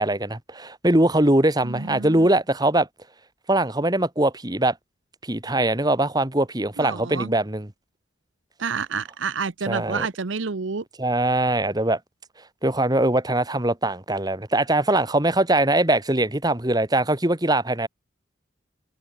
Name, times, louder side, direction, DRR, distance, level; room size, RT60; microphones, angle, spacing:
voice 1, 0.0-2.9 3.5-4.7 5.2-7.7 9.7-10.1 11.0-12.0 12.6-17.9, right 1 dB, 20° right, 1.9 m, -22 dB
voice 2, 1.6-2.3 6.8-7.3 8.6-10.8, right 5 dB, 70° right, 0.8 m, -29 dB
head